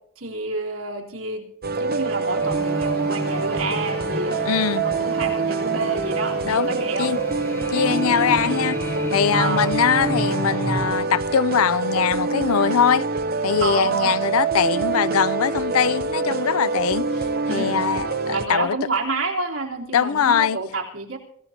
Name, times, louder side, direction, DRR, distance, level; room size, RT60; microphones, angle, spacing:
voice 1, 0.2-4.5 4.8-7.2 9.3-9.7 13.6-14.2 17.5-17.8 18.3-21.2, right 3 dB, 65° right, 3.5 m, -29 dB
sound 1, 1.6-18.5, right 4 dB, 45° right, 0.8 m, -25 dB
sound 2, 2.4-10.6, left 2 dB, 50° left, 2.0 m, -41 dB
sound 3, 2.4-10.9, equal, 10° left, 1.0 m, -32 dB
voice 2, 4.4-4.8 6.4-6.7 7.0-7.2 7.7-8.8 9.1-13.1 13.4-17.1 17.5-18.8 19.9-20.6, left 7 dB, 80° left, 0.4 m, -22 dB
24.0 x 15.0 x 2.9 m
head